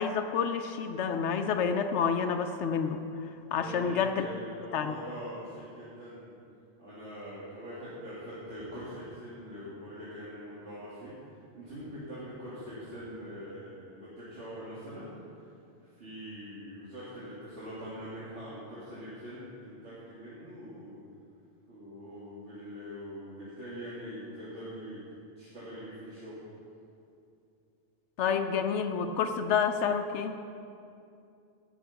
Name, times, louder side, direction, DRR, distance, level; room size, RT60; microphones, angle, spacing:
voice 1, 0.0-3.0 3.5-4.3 4.7-4.9 28.2-30.4, left 6 dB, 85° left, 6 dB, 0.9 m, -29 dB
voice 2, 3.4-6.3 6.8-11.1 11.5-15.1 15.4-15.5 15.8-21.0 21.7-25.0 25.4-26.4, equal, 85° right, -11 dB, 2.8 m, -43 dB
16.5 x 7.0 x 5.8 m, 2.6 s
omnidirectional pair, 1.2 m